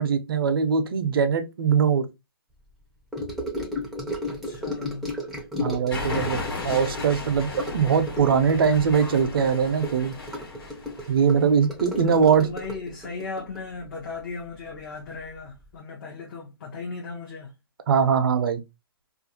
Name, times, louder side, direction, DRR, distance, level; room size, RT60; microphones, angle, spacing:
voice 1, 0.0-2.0 5.6-7.5 7.7-10.1 11.1-12.5 17.9-18.6, right 6 dB, 65° right, 0.5 m, -21 dB
Gurgling / Sink (filling or washing) / Trickle dribble, 3.1-14.8 15.0-15.4 15.6-15.7, left 1 dB, ahead, 0.5 m, -34 dB
voice 2, 4.3-5.2 12.0-17.5, left 4 dB, 50° left, 0.7 m, -37 dB
sound 1, 5.9-11.4, left 2 dB, 70° left, 1.2 m, -35 dB
2.5 x 2.2 x 2.6 m
hypercardioid pair, 140°, 13 cm